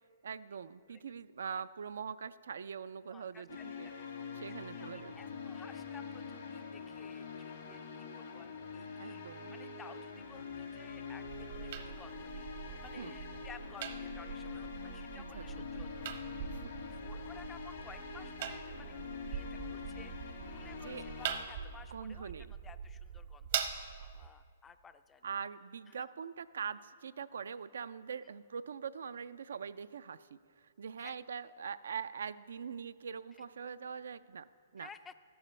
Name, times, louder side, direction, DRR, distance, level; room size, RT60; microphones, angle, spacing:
voice 1, 0.2-3.9 4.3-5.1 9.0-9.5 13.0-13.1 15.2-15.7 16.5-16.6 20.8-21.1 21.9-22.5 25.2-34.5 34.7-34.9, right 6 dB, 80° right, 14 dB, 0.3 m, -43 dB
voice 2, 3.1-4.0 4.5-12.5 12.8-16.1 17.0-18.9 19.3-23.5 24.0-25.2 25.9-26.0 31.0-31.1 34.8-35.1, left 6 dB, 15° left, 12 dB, 0.3 m, -56 dB
sound 1, 3.5-21.5, left 5 dB, 75° left, 1.7 m, -45 dB
sound 2, 11.3-24.3, right 8 dB, 55° right, 0.8 m, -43 dB
13.5 x 11.5 x 3.2 m, 2.1 s
hypercardioid pair, 140°, 0 cm